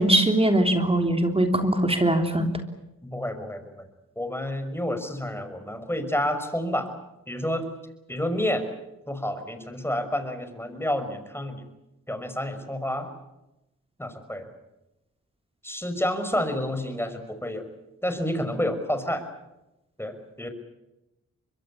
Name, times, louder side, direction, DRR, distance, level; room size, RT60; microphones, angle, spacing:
voice 1, 0.0-2.5, right 1 dB, 15° right, 5 dB, 3.3 m, -21 dB
voice 2, 3.0-3.8 4.2-6.9 7.3-7.6 8.1-8.6 9.1-11.6 12.1-13.1 14.0-14.5 15.6-17.6 18.0-19.2 20.0-20.5, left 1 dB, 5° left, 8 dB, 5.8 m, -29 dB
25.0 x 22.0 x 8.5 m, 0.93 s
supercardioid pair, 50°, 34 cm